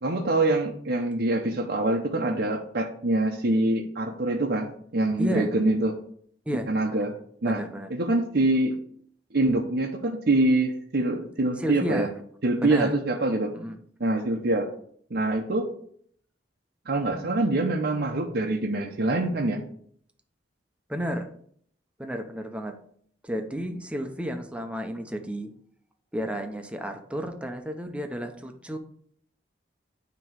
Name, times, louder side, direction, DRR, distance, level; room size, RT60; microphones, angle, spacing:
voice 1, 0.0-6.0 6.7-7.1 7.4-7.6 7.9-8.8 9.3-12.1 12.4-13.5 14.0-14.7 15.1-15.7 16.9-19.6, right 2 dB, 65° right, 1 dB, 0.8 m, -25 dB
voice 2, 5.2-5.5 6.5-6.7 7.5-7.9 11.6-12.1 12.6-12.9 13.5-13.8 20.9-21.3 22.0-22.8 23.2-25.5 26.1-28.8, equal, 5° right, 5 dB, 0.8 m, -32 dB
9.1 x 3.1 x 6.2 m, 0.63 s
head